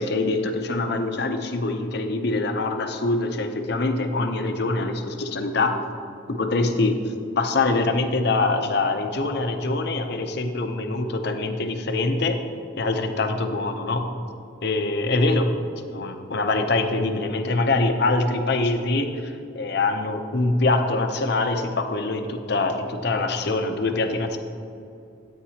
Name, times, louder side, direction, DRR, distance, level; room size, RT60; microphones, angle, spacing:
voice 1, 0.0-5.8 6.3-7.0 7.4-12.4 12.8-14.1 14.6-15.5 15.9-24.4, left 2 dB, 55° left, 6 dB, 0.7 m, -24 dB
12.5 x 8.8 x 2.9 m, 2.5 s
head